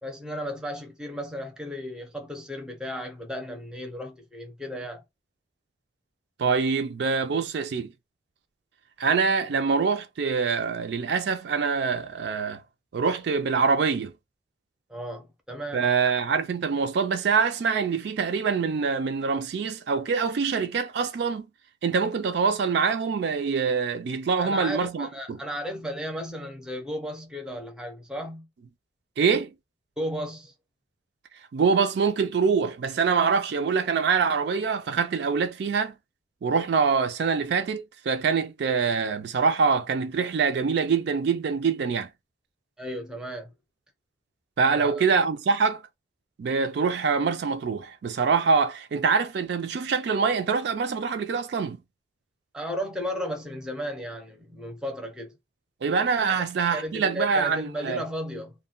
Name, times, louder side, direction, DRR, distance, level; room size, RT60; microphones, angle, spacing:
voice 1, 0.0-5.0 14.9-15.8 24.4-28.5 30.0-30.5 42.8-43.5 44.7-45.0 52.5-55.3 56.3-56.4 56.7-58.5, equal, 5° right, 0.5 m, -34 dB
voice 2, 6.4-7.9 9.0-12.6 12.9-14.1 15.7-21.5 21.8-25.4 29.2-29.5 31.5-35.9 36.4-42.1 44.6-45.8 46.4-51.8 55.8-58.0, right 5 dB, 60° right, 0.3 m, -25 dB
2.2 x 2.1 x 3.7 m
head